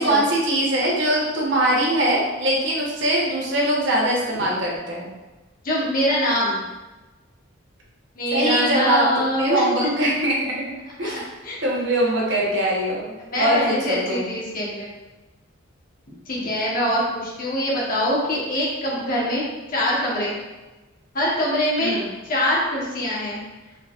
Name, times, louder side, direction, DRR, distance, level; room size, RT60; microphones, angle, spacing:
voice 1, 0.0-5.1 8.3-9.1 9.4-10.6 11.0-11.2 11.6-14.3 21.8-22.1, right 1 dB, 60° right, -4 dB, 1.0 m, -22 dB
voice 2, 5.6-6.6 8.2-9.7 11.0-11.1 11.4-11.6 13.2-14.9 16.3-20.3 21.1-21.9 22.2-23.4, equal, 40° left, -6 dB, 1.1 m, -24 dB
3.9 x 3.5 x 2.4 m, 1.1 s
head